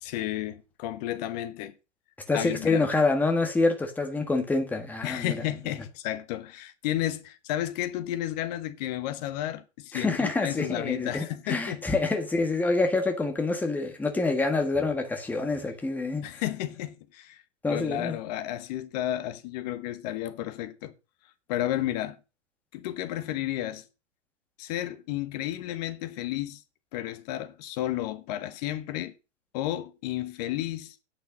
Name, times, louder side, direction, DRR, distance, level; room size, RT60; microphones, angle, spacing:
voice 1, 0.0-1.7 2.3-2.8 5.0-11.9 16.2-17.4 17.7-20.9 21.5-22.2 22.7-23.9 24.6-26.6 26.9-29.1 29.5-30.9, left 13 dB, 35° left, 1.2 m, -32 dB
voice 2, 2.3-5.4 9.9-16.4 17.6-18.2, left 3 dB, 5° left, 1.4 m, -26 dB
8.8 x 6.7 x 6.2 m
hypercardioid pair, 150°, 37 cm